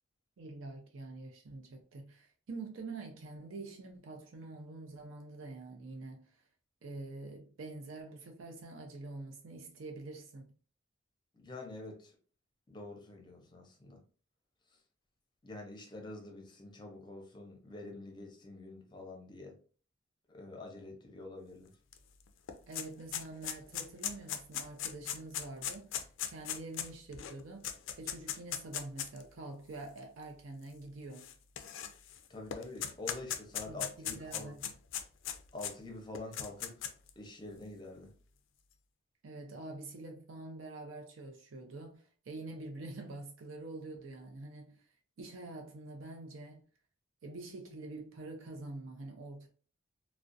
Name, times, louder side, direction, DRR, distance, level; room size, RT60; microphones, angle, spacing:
voice 1, 0.4-6.4 6.8-10.5 22.7-27.7 28.0-31.3 33.6-34.7 39.2-44.8 45.2-46.6 47.2-49.5, right 2 dB, 80° right, 0.5 m, -46 dB
voice 2, 11.3-12.1 12.7-14.0 15.4-19.5 20.3-21.7 32.3-34.5 35.5-36.7 37.2-38.1, left 2 dB, 20° left, 0.6 m, -46 dB
sound 1, 21.9-22.0 22.3-29.2 30.0-30.1 31.1-32.2 32.5-35.7 36.1-37.1, left 9 dB, 70° left, 0.3 m, -38 dB
2.4 x 2.1 x 2.5 m
head